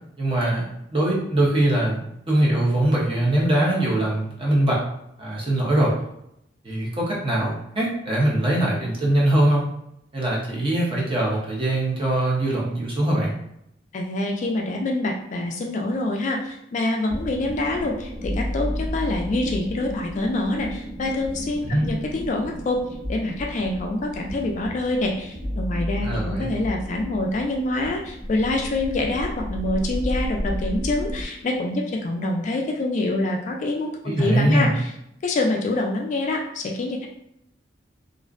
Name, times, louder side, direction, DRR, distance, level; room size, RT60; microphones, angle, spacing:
voice 1, 0.2-0.7 0.9-4.8 5.2-5.9 6.6-9.6 10.1-13.3 21.6-21.9 26.0-26.5 34.0-34.7, right 1 dB, 30° right, -4 dB, 0.7 m, -22 dB
voice 2, 13.9-22.8 23.1-33.9 34.2-34.9 35.2-37.1, left 2 dB, 40° left, 1 dB, 0.3 m, -26 dB
sound 1, 17.1-31.2, equal, 75° right, 0.9 m, -32 dB
2.5 x 2.1 x 2.4 m, 0.79 s
head